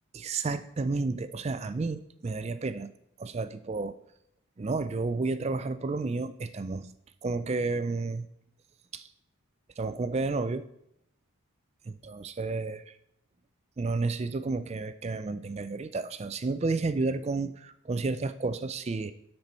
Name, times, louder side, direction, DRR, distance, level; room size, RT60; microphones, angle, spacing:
voice 1, 0.1-2.9 3.2-3.9 4.6-6.9 7.2-8.3 8.9-9.1 9.8-10.7 11.9-12.8 13.8-19.1, right 3 dB, 30° right, 13 dB, 0.3 m, -31 dB
12.0 x 4.5 x 4.1 m, 0.75 s
head